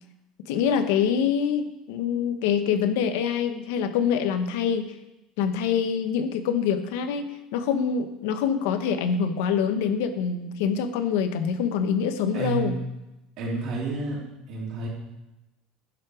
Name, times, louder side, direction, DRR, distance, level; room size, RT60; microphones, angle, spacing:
voice 1, 0.5-4.9 5.4-7.3 7.5-12.8, left 7 dB, 85° left, 9 dB, 1.0 m, -25 dB
voice 2, 12.3-12.7 13.4-14.2 14.5-14.9, right 4 dB, 50° right, -3 dB, 3.4 m, -29 dB
11.0 x 7.6 x 4.9 m, 0.95 s
cardioid pair, 170°, 0 cm